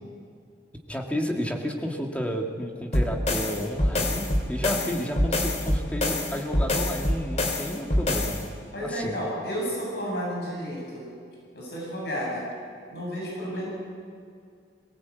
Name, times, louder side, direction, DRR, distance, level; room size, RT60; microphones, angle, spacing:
voice 1, 0.9-8.5 8.8-9.2, equal, 10° left, 1 dB, 2.0 m, -31 dB
sound 1, 2.9-8.4, left 1 dB, 40° left, 2.9 m, -25 dB
voice 2, 8.7-11.1 11.5-12.4 12.9-13.7, equal, 65° left, -4 dB, 7.8 m, -31 dB
22.0 x 18.0 x 8.5 m, 2.2 s
head